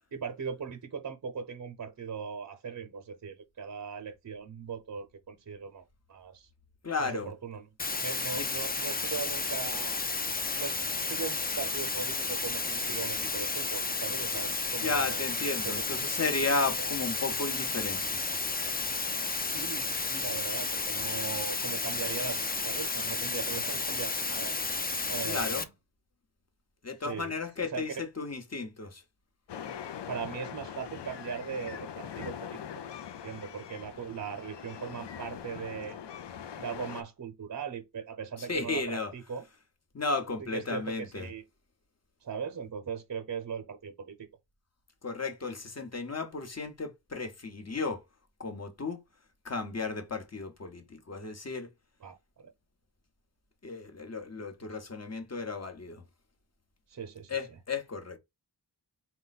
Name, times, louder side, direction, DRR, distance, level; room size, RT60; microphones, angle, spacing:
voice 1, 0.1-6.5 7.0-7.7 8.0-10.0 10.5-10.8 11.1-15.3 15.6-15.8 16.8-16.9 19.4-24.5 25.1-25.7 27.0-28.0 30.1-32.6 33.2-36.0 36.6-39.4 40.4-41.4 42.2-44.3 52.0-52.5 56.9-57.3, right 6 dB, 50° right, 0.7 m, -39 dB
voice 2, 6.8-7.3 8.3-8.5 14.8-18.2 25.2-25.7 26.8-29.0 38.4-39.1 39.9-41.3 45.0-48.0 48.4-49.0 49.4-51.7 53.6-56.0 57.3-58.2, left 3 dB, 40° left, 0.9 m, -34 dB
sound 1, 7.8-25.6, left 3 dB, 20° left, 0.5 m, -32 dB
sound 2, 29.5-37.0, left 8 dB, 80° left, 0.6 m, -42 dB
4.2 x 2.2 x 4.0 m
wide cardioid pair, 100°, 42 cm